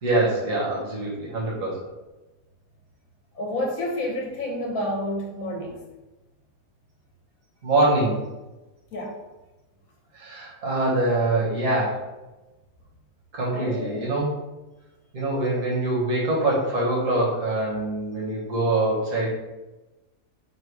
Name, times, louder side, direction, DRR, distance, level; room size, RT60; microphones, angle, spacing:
voice 1, 0.0-1.8 7.6-8.2 10.1-12.0 13.3-14.3 15.1-19.3, right 2 dB, 55° right, -6 dB, 1.6 m, -24 dB
voice 2, 3.3-5.8 8.9-9.1 13.5-14.2, left 1 dB, 65° left, -2 dB, 1.3 m, -29 dB
4.0 x 2.2 x 4.6 m, 1.1 s
omnidirectional pair, 1.7 m